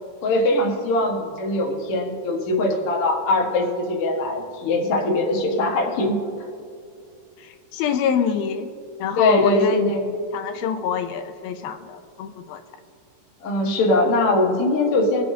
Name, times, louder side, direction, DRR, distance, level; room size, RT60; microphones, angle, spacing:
voice 1, 0.2-6.2 9.2-10.1 13.4-15.2, left 2 dB, 50° left, -1 dB, 2.1 m, -21 dB
voice 2, 7.7-8.7 9.0-9.9 10.3-12.6, left 7 dB, 85° left, 7 dB, 2.5 m, -25 dB
23.0 x 7.9 x 2.8 m, 2.5 s
omnidirectional pair, 4.2 m